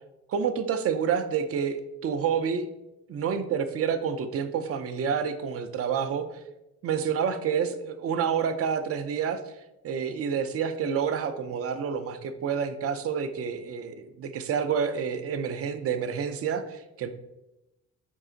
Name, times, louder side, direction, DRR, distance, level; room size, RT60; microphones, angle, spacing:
voice 1, 0.3-2.7 3.1-6.3 6.8-9.4 9.8-17.1, right 7 dB, 50° right, 9 dB, 0.5 m, -28 dB
5.3 x 2.4 x 3.8 m, 0.95 s
cardioid pair, 90°, 30 cm